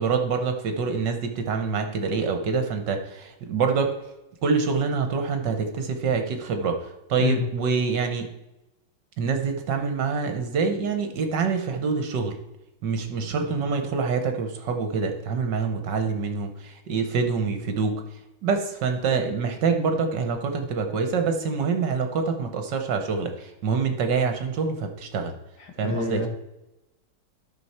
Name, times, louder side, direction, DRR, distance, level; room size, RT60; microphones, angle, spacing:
voice 1, 0.0-3.9 4.4-8.3 9.2-12.4 12.8-18.0 18.4-25.3 25.8-26.3, right 5 dB, 60° right, 6 dB, 1.5 m, -26 dB
voice 2, 25.8-26.3, left 5 dB, 65° left, 4 dB, 2.0 m, -26 dB
13.0 x 6.3 x 4.3 m, 0.97 s
omnidirectional pair, 2.2 m